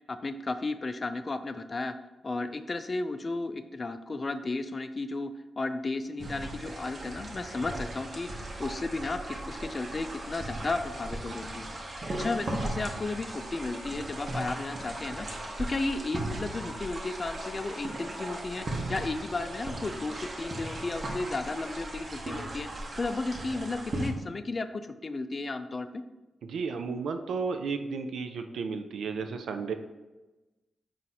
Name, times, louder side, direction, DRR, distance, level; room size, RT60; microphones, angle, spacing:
voice 1, 0.1-1.9 2.2-22.7 23.0-26.0, left 3 dB, 45° left, 10 dB, 0.3 m, -34 dB
sound 1, 6.2-24.1, right 1 dB, 50° right, 0.9 m, -37 dB
voice 2, 26.4-29.7, right 5 dB, 80° right, 7 dB, 0.3 m, -33 dB
4.2 x 2.4 x 4.0 m, 1.1 s
supercardioid pair, 45°, 0 cm